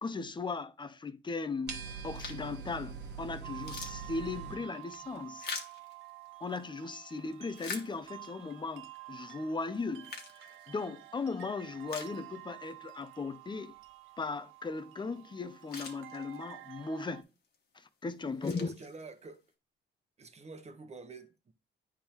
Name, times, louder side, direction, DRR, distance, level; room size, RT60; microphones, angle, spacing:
voice 1, 0.0-5.5 6.4-10.1 10.4-13.7 14.2-17.2 17.7-18.7, left 4 dB, 25° left, 0.6 m, -37 dB
sound 1, 1.7-4.5, right 5 dB, 55° right, 1.3 m, -43 dB
sound 2, 2.1-2.6 3.1-3.2 3.5-6.6 7.2-8.4 9.0-9.1 9.7-11.1 11.5-11.6 11.9-12.7 13.1-13.2 15.2-15.3 15.5-16.6 17.2-17.6 18.1-19.4, left 4 dB, 55° left, 1.6 m, -45 dB
sound 3, 3.4-17.2, right 19 dB, 80° right, 0.5 m, -50 dB
voice 2, 18.3-19.4 20.2-21.5, right 4 dB, 35° right, 1.1 m, -48 dB
9.8 x 3.6 x 3.0 m
cardioid pair, 90°, 20 cm